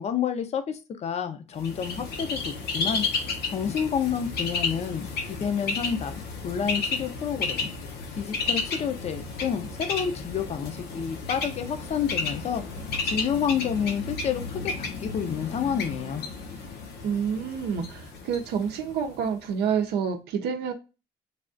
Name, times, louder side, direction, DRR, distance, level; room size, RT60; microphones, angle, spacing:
voice 1, 0.0-3.1 3.5-7.7 8.1-12.6 13.0-16.2, left 7 dB, 40° left, 8 dB, 0.5 m, -29 dB
Bird, 1.6-19.3, left 4 dB, 70° left, 0.8 m, -32 dB
voice 2, 17.0-20.7, right 7 dB, 75° right, 5 dB, 0.5 m, -28 dB
3.3 x 2.3 x 2.4 m, 0.29 s
cardioid pair, 110°, 17 cm